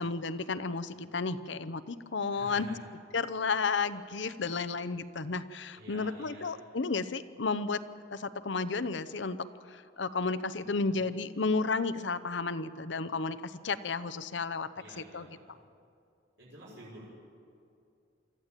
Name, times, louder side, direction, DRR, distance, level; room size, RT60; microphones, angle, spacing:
voice 1, 0.0-2.7 3.1-7.8 8.1-9.4 9.7-14.7 15.0-15.3, left 4 dB, 70° left, 13 dB, 0.8 m, -32 dB
voice 2, 2.3-2.8 5.7-6.5 10.7-11.0 14.8-15.6 16.4-17.2, right 1 dB, 70° right, -6 dB, 6.1 m, -49 dB
24.5 x 14.0 x 9.0 m, 2.5 s
head